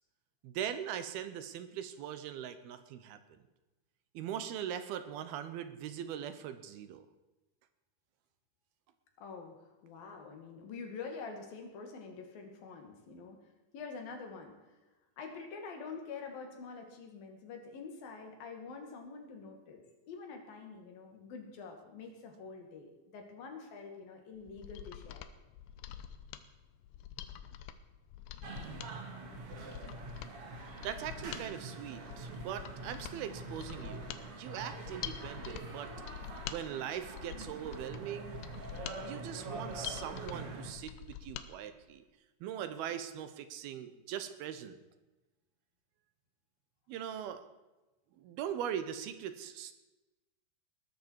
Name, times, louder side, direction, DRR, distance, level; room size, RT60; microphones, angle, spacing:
voice 1, 0.4-3.4 4.1-7.1 30.8-35.9 36.5-38.4 38.9-42.0 42.4-44.8 46.9-47.4 48.2-49.7, right 9 dB, 80° right, 11 dB, 2.8 m, -41 dB
voice 2, 9.2-13.4 13.7-14.7 15.2-25.3, left 5 dB, 65° left, 3 dB, 3.8 m, -46 dB
Mechanisms, 24.4-41.5 41.8-41.9, left 11 dB, 85° left, 2.9 m, -46 dB
sound 1, 28.4-40.7, right 3 dB, 45° right, 2.5 m, -45 dB
20.5 x 12.5 x 4.7 m, 1.1 s
omnidirectional pair, 4.6 m